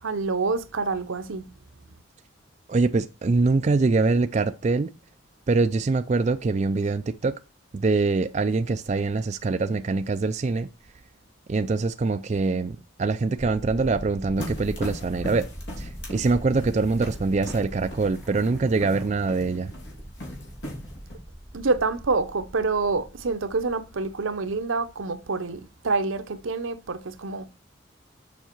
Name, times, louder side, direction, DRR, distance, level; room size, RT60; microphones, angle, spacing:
voice 1, 0.0-1.5 21.5-27.5, right 3 dB, 80° right, 0.8 m, -27 dB
voice 2, 2.7-4.9 5.5-7.4 7.7-10.7 11.5-15.5 15.8-19.7, right 3 dB, 35° right, 0.3 m, -24 dB
sound 1, 13.4-24.0, equal, 5° right, 1.2 m, -42 dB
sound 2, 14.4-21.2, equal, 60° left, 3.1 m, -39 dB
7.1 x 5.4 x 4.5 m
head